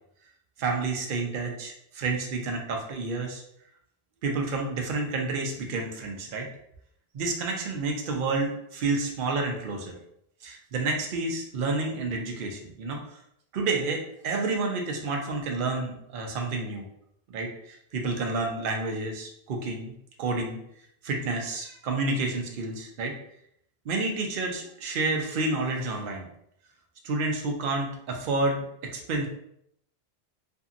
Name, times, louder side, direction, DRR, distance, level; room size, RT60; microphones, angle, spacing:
voice 1, 0.6-3.4 4.2-6.5 7.1-9.9 10.4-13.2 13.5-16.9 17.3-20.6 21.0-23.2 23.8-26.3 27.0-28.6 28.9-29.3, right 3 dB, 60° right, 1 dB, 0.7 m, -29 dB
2.6 x 2.6 x 2.4 m, 0.74 s
omnidirectional pair, 1.1 m